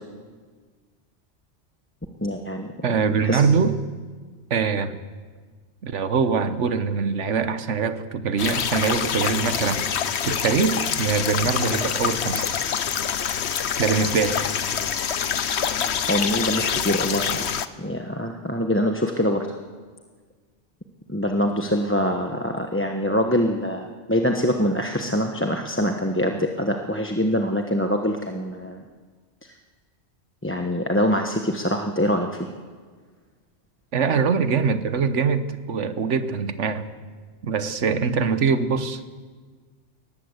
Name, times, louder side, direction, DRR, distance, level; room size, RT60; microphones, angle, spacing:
voice 1, 2.2-2.7 3.2-3.4 16.1-17.4 17.8-19.5 21.1-28.8 30.4-32.5, equal, 10° left, 3 dB, 1.0 m, -24 dB
voice 2, 2.8-3.8 4.5-5.0 5.8-9.9 10.2-12.5 13.8-14.4 33.9-36.9 37.4-39.0, right 5 dB, 80° right, 11 dB, 1.4 m, -23 dB
sound 1, 8.4-17.7, left 8 dB, 65° left, 1.1 m, -26 dB
21.5 x 18.5 x 8.1 m, 1.5 s
omnidirectional pair, 1.2 m